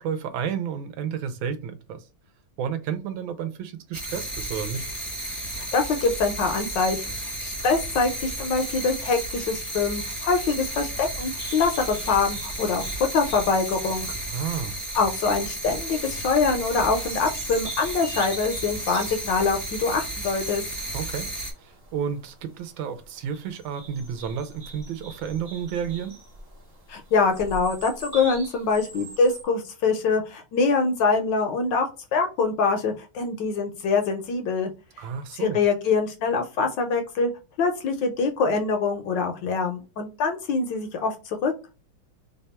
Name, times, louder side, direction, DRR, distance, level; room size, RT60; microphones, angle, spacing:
voice 1, 0.0-2.0 2.6-4.9 14.3-14.7 20.9-21.3 21.6-26.2 35.0-35.6, right 7 dB, 75° right, 1.3 m, -31 dB
sound 1, 3.9-21.5, right 1 dB, ahead, 0.7 m, -33 dB
voice 2, 5.5-12.8 13.1-14.1 14.9-20.6 26.9-31.9 32.1-34.7 35.4-37.3 37.6-41.5, left 4 dB, 75° left, 1.1 m, -24 dB
sound 2, 11.4-29.4, right 2 dB, 40° right, 0.9 m, -44 dB
3.3 x 2.3 x 4.1 m
omnidirectional pair, 2.3 m